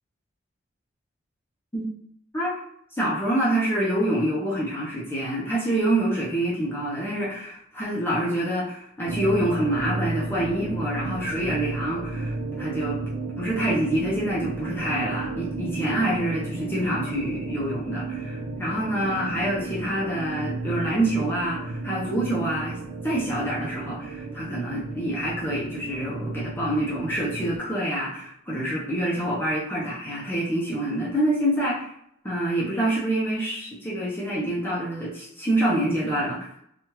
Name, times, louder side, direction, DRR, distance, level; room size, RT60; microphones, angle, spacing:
voice 1, 2.9-13.0 13.4-22.8 23.0-31.9 32.2-36.5, right 1 dB, 10° left, -7 dB, 0.6 m, -26 dB
sound 1, 9.1-27.6, right 3 dB, 80° right, 0.4 m, -33 dB
3.1 x 2.3 x 3.0 m, 0.70 s
head